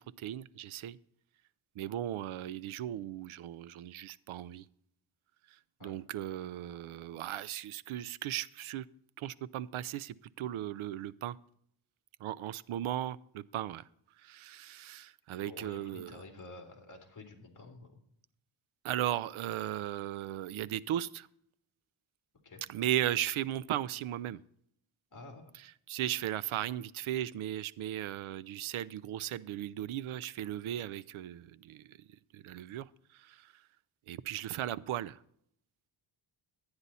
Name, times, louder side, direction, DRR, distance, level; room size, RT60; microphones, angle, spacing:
voice 1, 0.2-1.0 1.8-4.6 5.8-8.8 9.2-11.4 12.2-13.8 14.2-16.2 18.8-21.3 22.7-24.4 25.5-32.0 32.3-32.9 33.2-33.5 34.1-35.2, right 12 dB, 85° right, 18 dB, 0.6 m, -36 dB
voice 2, 15.4-18.0 22.4-22.6 25.1-25.5, left 3 dB, 40° left, 3 dB, 2.5 m, -50 dB
11.5 x 9.7 x 4.1 m, 0.68 s
wide cardioid pair, 155°, 48 cm